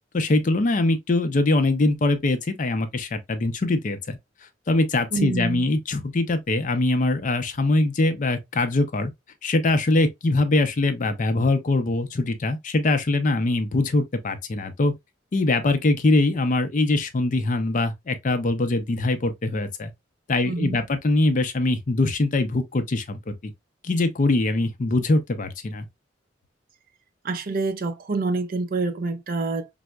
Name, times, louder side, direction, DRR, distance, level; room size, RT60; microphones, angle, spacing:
voice 1, 0.1-4.2 4.7-9.1 9.4-14.9 15.3-19.9 20.3-23.3 23.8-25.9, left 2 dB, 45° left, 0.5 m, -22 dB
voice 2, 5.1-5.7 20.5-20.8 27.2-29.7, right 3 dB, 50° right, 0.4 m, -27 dB
4.3 x 2.0 x 2.2 m
head